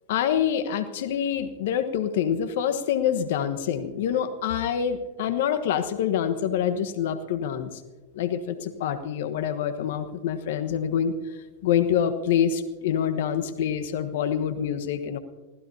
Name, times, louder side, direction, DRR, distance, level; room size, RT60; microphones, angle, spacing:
voice 1, 0.1-7.7 8.1-11.1 11.6-15.2, left 9 dB, 70° left, 10 dB, 1.2 m, -26 dB
24.5 x 16.0 x 2.8 m, 1.3 s
hypercardioid pair, 105°, 0 cm